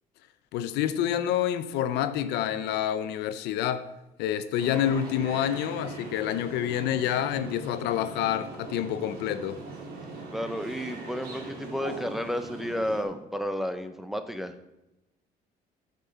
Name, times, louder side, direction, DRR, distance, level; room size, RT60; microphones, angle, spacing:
voice 1, 0.5-3.9 4.2-9.6, left 10 dB, 90° left, 0.6 m, -28 dB
sound 1, 4.6-13.0, right 3 dB, 65° right, 3.0 m, -41 dB
voice 2, 10.3-14.5, equal, ahead, 0.7 m, -32 dB
10.5 x 5.4 x 5.6 m
cardioid pair, 110°, 17 cm